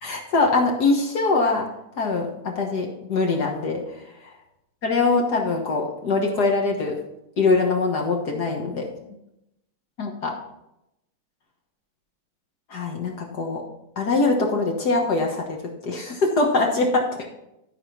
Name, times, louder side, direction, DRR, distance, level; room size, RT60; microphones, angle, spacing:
voice 1, 0.0-1.7 2.0-4.3 4.8-7.0 7.4-8.9 10.0-10.3 12.7-13.6 14.0-17.3, left 3 dB, 50° left, 1 dB, 1.8 m, -23 dB
13.0 x 5.1 x 5.9 m, 0.84 s
omnidirectional pair, 2.3 m